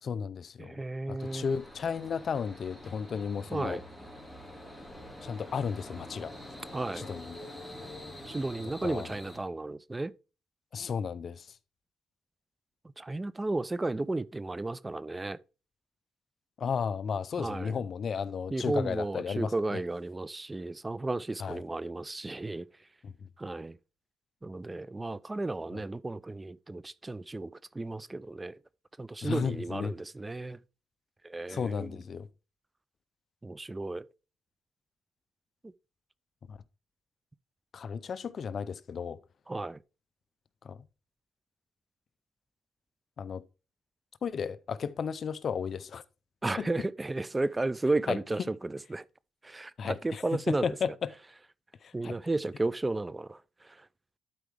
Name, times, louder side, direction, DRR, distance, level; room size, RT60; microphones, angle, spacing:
voice 1, 0.0-0.8 1.1-3.8 5.2-6.3 6.9-7.4 8.8-9.1 10.7-11.6 16.6-19.8 21.4-21.6 23.0-23.3 25.7-25.8 29.2-30.0 31.5-32.3 36.5-36.6 37.7-39.2 40.6-40.8 43.2-43.4 44.2-46.0 46.6-46.7 48.1-48.5 49.8-51.1 51.8-52.2, left 6 dB, 50° left, 0.5 m, -34 dB
voice 2, 0.6-1.5 3.5-3.8 6.7-7.1 8.3-10.1 13.0-15.4 17.4-17.8 18.5-22.7 23.4-23.8 24.4-28.6 29.0-30.6 31.2-31.9 33.4-34.0 39.5-39.8 46.4-49.0 49.4-50.7 51.9-53.9, right 2 dB, 20° right, 0.3 m, -33 dB
sound 1, 1.2-9.4, left 1 dB, 5° left, 2.8 m, -46 dB
12.0 x 4.6 x 3.3 m
cardioid pair, 90°, 0 cm